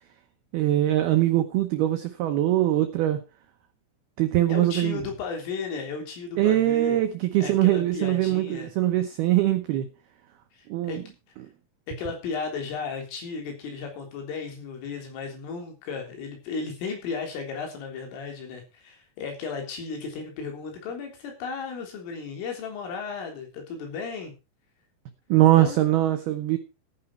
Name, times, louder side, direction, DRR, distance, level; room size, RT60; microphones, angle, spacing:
voice 1, 0.5-3.2 4.2-5.0 6.4-9.9 10.7-11.0 25.3-26.6, right 14 dB, 80° right, 2.2 m, -22 dB
voice 2, 4.5-7.0 7.4-8.7 10.5-11.0 11.9-24.3 25.6-25.8, left 5 dB, 75° left, 6.0 m, -35 dB
14.5 x 10.0 x 4.4 m
omnidirectional pair, 5.8 m